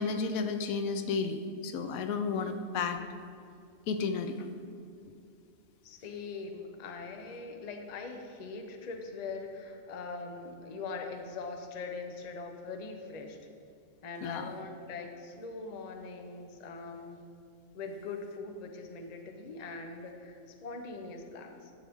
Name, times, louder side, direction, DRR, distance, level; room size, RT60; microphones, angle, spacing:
voice 1, 0.0-3.0 3.9-4.5 14.2-14.5, left 4 dB, 80° left, 8 dB, 1.0 m, -32 dB
voice 2, 5.8-13.4 14.0-17.2 17.7-21.7, left 4 dB, 40° left, 4 dB, 0.7 m, -42 dB
10.0 x 7.3 x 3.5 m, 2.4 s
omnidirectional pair, 1.4 m